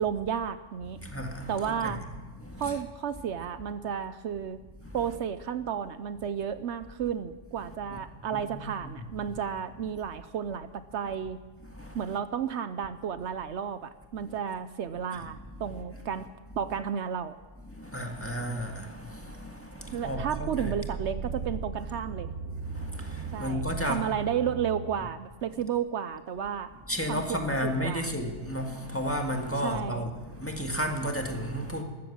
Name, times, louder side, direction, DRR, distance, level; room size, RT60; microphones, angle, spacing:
voice 1, 0.0-1.0 1.5-2.0 2.6-4.6 4.9-11.4 11.9-16.3 16.6-17.4 19.9-22.3 23.3-26.7 27.1-28.1 29.6-30.1, right 8 dB, 70° right, 12 dB, 0.9 m, -32 dB
voice 2, 1.0-2.0 2.4-2.7 4.8-5.0 8.3-9.4 11.7-12.0 14.2-14.3 17.7-20.7 22.6-24.1 26.9-31.8, equal, 10° left, 3 dB, 1.7 m, -33 dB
sound 1, 19.8-24.9, right 5 dB, 50° right, 1.0 m, -37 dB
14.0 x 13.5 x 7.3 m, 1.4 s
omnidirectional pair, 1.3 m